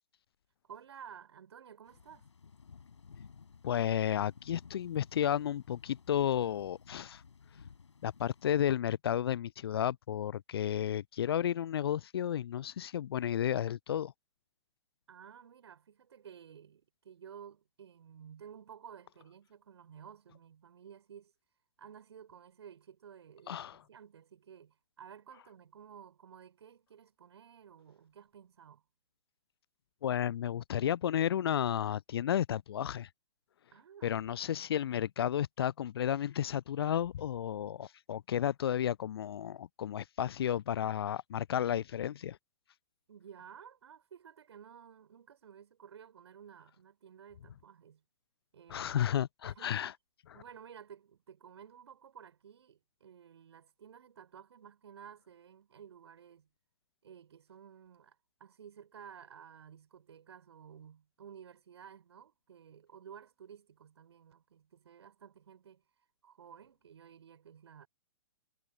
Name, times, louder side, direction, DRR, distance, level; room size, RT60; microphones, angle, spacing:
voice 1, 0.6-2.3 15.1-21.3 21.8-28.8 33.7-34.2 34.6-35.0 43.1-48.0 48.5-49.1 49.4-49.8 50.3-56.5 57.0-65.8 66.2-67.9, right 8 dB, 60° right, 6.1 m, -54 dB
sound 1, 1.8-8.8, left 5 dB, 65° left, 5.7 m, -56 dB
voice 2, 3.6-7.2 8.0-14.1 23.5-23.8 30.0-33.1 34.0-42.4 48.7-49.9 50.3-50.4, left 10 dB, 50° left, 0.5 m, -32 dB
figure-of-eight pair, 120°, 16 cm